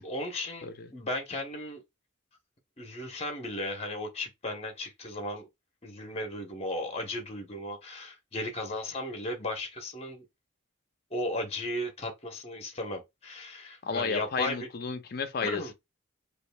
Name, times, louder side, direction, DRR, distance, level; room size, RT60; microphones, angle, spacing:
voice 1, 0.0-1.8 2.8-5.5 5.8-10.2 11.1-14.7 15.4-15.7, left 1 dB, 30° left, 0.9 m, -35 dB
voice 2, 13.8-15.7, left 5 dB, 50° left, 0.5 m, -32 dB
5.1 x 2.5 x 2.2 m
head